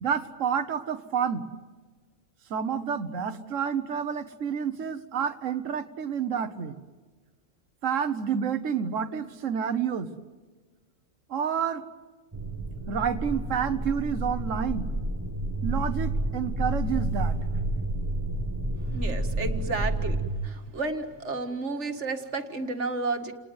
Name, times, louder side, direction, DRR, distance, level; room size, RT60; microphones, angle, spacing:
voice 1, 0.0-1.4 2.5-6.8 7.8-10.1 11.3-11.8 12.9-14.9 15.6-17.4, right 7 dB, 80° right, 9 dB, 1.5 m, -29 dB
sound 1, 12.3-20.3, right 1 dB, 15° right, 1.5 m, -30 dB
voice 2, 18.9-20.2 20.4-23.3, right 3 dB, 65° right, 6 dB, 2.2 m, -32 dB
29.5 x 19.5 x 9.5 m, 1.4 s
omnidirectional pair, 1.3 m